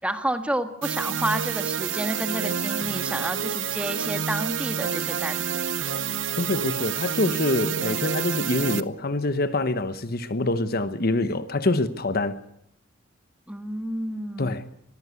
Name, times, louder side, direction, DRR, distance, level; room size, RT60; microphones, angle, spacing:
voice 1, 0.0-5.4 13.5-14.6, right 1 dB, 5° right, 1.6 m, -30 dB
sound 1, 0.8-8.8, right 8 dB, 75° right, 0.9 m, -28 dB
voice 2, 6.4-12.4 14.4-14.7, left 2 dB, 55° left, 1.1 m, -25 dB
22.0 x 15.0 x 8.3 m
head